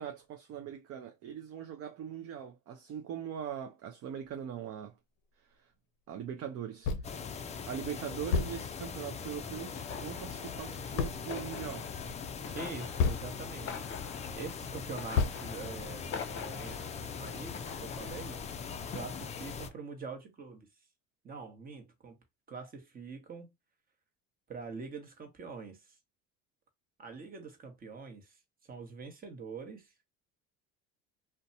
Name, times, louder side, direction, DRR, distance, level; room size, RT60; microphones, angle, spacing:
voice 1, 0.0-5.0 5.4-5.7 6.1-6.9 7.7-11.9, right 8 dB, 50° right, 0.5 m, -41 dB
sound 1, 6.8-7.2 7.7-7.8 8.3-9.0 11.0-11.4 13.0-13.6 14.2-14.3 15.1-16.0, left 5 dB, 70° left, 0.6 m, -32 dB
sound 2, 7.0-19.7, left 6 dB, 20° left, 0.4 m, -41 dB
sound 3, 9.7-19.7, left 6 dB, 40° left, 0.8 m, -46 dB
voice 2, 12.5-13.8 14.4-16.0 16.3-18.4 18.9-20.7 21.2-22.2 22.5-23.5 24.5-26.0 27.0-29.9, right 4 dB, 30° right, 1.0 m, -44 dB
2.6 x 2.2 x 2.6 m
supercardioid pair, 100°, 32 cm